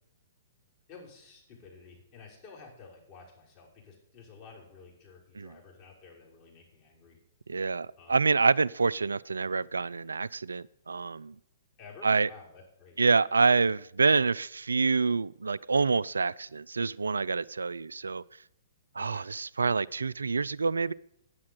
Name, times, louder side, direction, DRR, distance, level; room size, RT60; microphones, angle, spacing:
voice 1, 0.9-7.2 8.0-8.3 11.8-13.0 19.0-19.3, left 4 dB, 35° left, -3 dB, 5.4 m, -52 dB
voice 2, 7.5-11.3 12.0-12.3 13.0-18.2 19.0-20.9, right 4 dB, 80° right, 20 dB, 0.4 m, -27 dB
9.7 x 8.5 x 7.8 m, 0.75 s
figure-of-eight pair, 120°, 0 cm